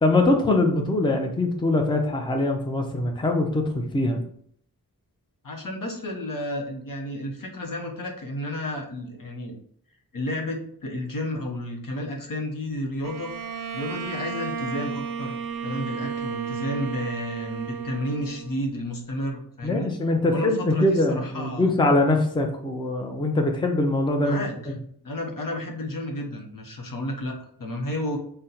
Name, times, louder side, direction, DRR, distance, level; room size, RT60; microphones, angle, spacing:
voice 1, 0.0-4.2 19.6-24.4, left 2 dB, 15° left, 3 dB, 0.5 m, -23 dB
voice 2, 5.4-9.6 10.1-15.4 15.6-19.9 20.3-21.8 24.2-24.7 25.0-28.2, left 1 dB, 60° left, 1 dB, 0.8 m, -32 dB
Bowed string instrument, 13.0-18.8, right 6 dB, 65° right, 0.5 m, -33 dB
4.2 x 2.2 x 3.9 m, 0.63 s
wide cardioid pair, 90°, 37 cm